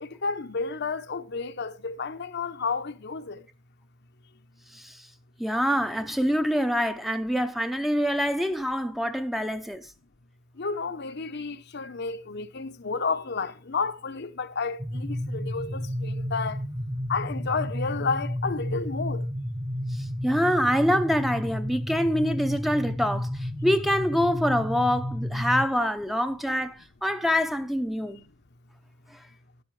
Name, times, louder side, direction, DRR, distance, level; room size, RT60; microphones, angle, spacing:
voice 1, 0.0-3.4 10.6-16.6 17.1-19.2, left 4 dB, 55° left, 0.9 m, -31 dB
voice 2, 4.7-5.1 5.4-9.9 19.9-28.2 29.1-29.2, equal, ahead, 0.7 m, -25 dB
sound 1, 14.8-25.7, equal, 20° right, 1.0 m, -32 dB
12.0 x 11.0 x 3.3 m
head